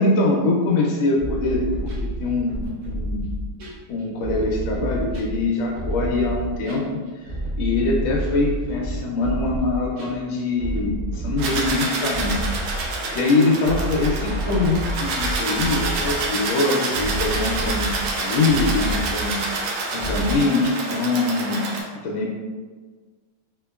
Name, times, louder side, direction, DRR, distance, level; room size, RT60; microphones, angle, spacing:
voice 1, 0.0-1.9 2.2-3.3 3.9-12.4 12.8-19.4 19.9-21.7 22.0-22.3, left 3 dB, 80° left, -2 dB, 1.3 m, -23 dB
sound 1, 1.2-20.4, right 1 dB, 60° right, 1.1 m, -29 dB
sound 2, 11.4-21.8, right 3 dB, 85° right, 1.4 m, -27 dB
3.9 x 2.9 x 2.3 m, 1.4 s
omnidirectional pair, 2.2 m